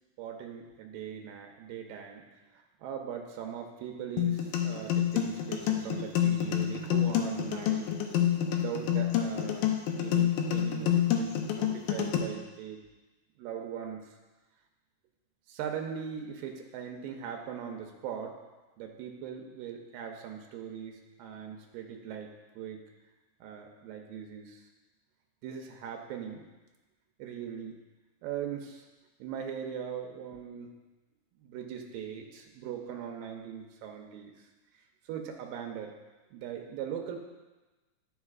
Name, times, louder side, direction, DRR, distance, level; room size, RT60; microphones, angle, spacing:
voice 1, 0.2-2.2 2.5-7.9 8.5-12.8 13.4-14.1 15.5-18.4 18.8-22.8 23.4-24.6 25.4-26.5 27.2-27.7 28.2-28.9 29.2-30.7 31.4-34.3 35.1-35.9 36.3-37.2, right 8 dB, 85° right, 3 dB, 2.3 m, -40 dB
sound 1, 4.2-12.2, left 10 dB, 85° left, 2.3 m, -27 dB
12.0 x 4.6 x 2.4 m, 1.2 s
omnidirectional pair, 3.9 m